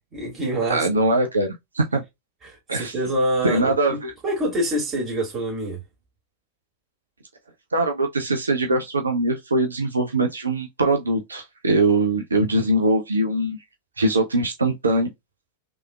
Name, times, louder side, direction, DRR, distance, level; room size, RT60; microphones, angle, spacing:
voice 1, 0.1-1.0 2.4-5.8, right 1 dB, 25° right, 2.1 m, -26 dB
voice 2, 0.7-2.0 2.7-2.9 3.4-4.1 7.7-13.6 14.0-15.1, right 2 dB, 75° right, 0.5 m, -22 dB
3.4 x 2.9 x 2.3 m
figure-of-eight pair, 90°, 0 cm